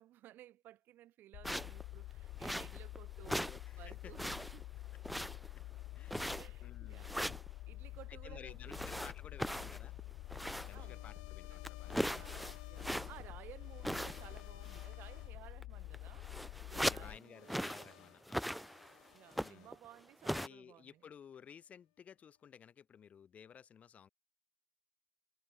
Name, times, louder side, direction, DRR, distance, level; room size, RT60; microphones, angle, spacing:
voice 1, 0.0-3.5 3.8-4.7 6.3-7.3 7.7-9.1 9.4-9.9 10.7-11.7 12.1-16.4 16.7-18.1 19.1-21.0, right 14 dB, 55° right, 6.8 m, -57 dB
sound 1, 1.3-17.2, left 17 dB, 60° left, 1.4 m, -48 dB
sound 2, 1.4-1.8 2.4-3.0 3.2-3.6 3.9-4.6 5.0-5.6 6.1-6.6 7.0-7.5 8.7-10.8 11.2-11.3 11.6-13.3 13.8-14.4 14.7-14.9 15.6-15.7 15.9-17.1 17.5-17.9 18.3-18.9 19.3-19.7 20.2-20.5, equal, ahead, 0.4 m, -39 dB
voice 2, 3.2-4.1 5.1-5.6 5.9-7.1 8.1-9.9 10.6-12.1 16.8-18.6 19.3-19.7 20.3-24.1, left 8 dB, 35° left, 3.6 m, -56 dB
sound 3, 4.9-15.4 16.0-20.3, left 24 dB, 90° left, 7.3 m, -62 dB
supercardioid pair, 105°, 4 cm